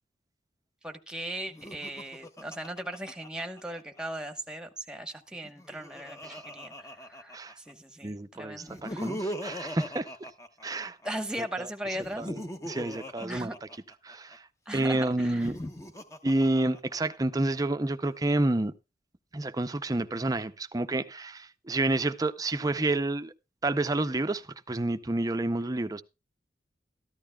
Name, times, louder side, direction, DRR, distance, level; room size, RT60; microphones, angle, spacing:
voice 1, 0.8-9.1 11.0-12.3 13.2-13.6 14.7-15.5, right 1 dB, 5° right, 1.1 m, -38 dB
Laughter, 1.5-4.0 5.3-7.7 8.6-11.1 11.9-14.4 15.2-17.2, equal, 15° left, 0.8 m, -40 dB
voice 2, 8.0-10.1 10.6-11.0 11.6-11.7 12.2-12.4 12.7-13.5 14.0-14.5 14.7-15.6 16.2-18.7 19.3-23.3 23.6-26.0, right 2 dB, 20° right, 0.6 m, -29 dB
14.0 x 12.5 x 2.3 m
head